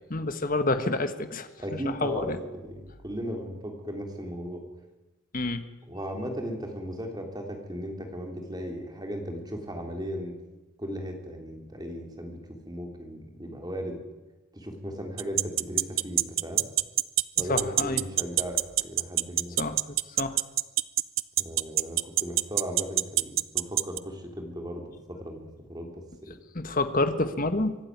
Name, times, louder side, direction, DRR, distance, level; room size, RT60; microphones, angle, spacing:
voice 1, 0.1-2.4 5.3-5.6 17.5-18.0 19.6-20.4 26.5-27.8, left 2 dB, 40° left, 9 dB, 1.4 m, -28 dB
voice 2, 1.6-4.6 5.9-10.3 10.8-12.4 12.6-14.0 14.5-16.7 17.4-19.6 21.4-26.3, equal, 20° right, 3 dB, 3.4 m, -36 dB
sound 1, 15.2-24.0, right 16 dB, 70° right, 0.6 m, -23 dB
24.5 x 12.0 x 9.5 m, 1.1 s
head